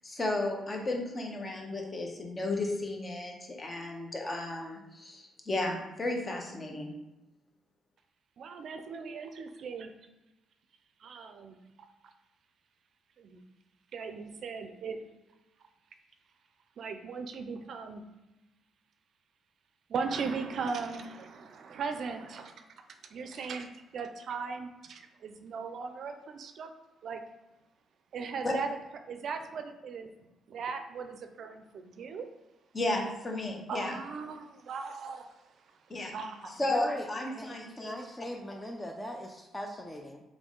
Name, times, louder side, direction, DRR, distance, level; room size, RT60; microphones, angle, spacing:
voice 1, 0.0-6.9 28.4-28.5 32.7-34.0 35.9-36.1 36.6-37.9, left 2 dB, 30° left, 1 dB, 1.0 m, -33 dB
voice 2, 8.4-9.9 11.0-11.6 13.2-13.4 13.9-15.0 16.8-18.0 19.9-22.6 23.1-26.7 27.0-27.2 28.1-28.8 29.1-30.1 30.5-32.3 33.7-35.3 36.1-36.5, right 5 dB, 65° right, 7 dB, 0.4 m, -38 dB
voice 3, 36.4-37.1 37.3-40.2, left 1 dB, 15° left, 1 dB, 0.5 m, -40 dB
3.5 x 3.1 x 3.8 m, 0.99 s
cardioid pair, 90°, 0 cm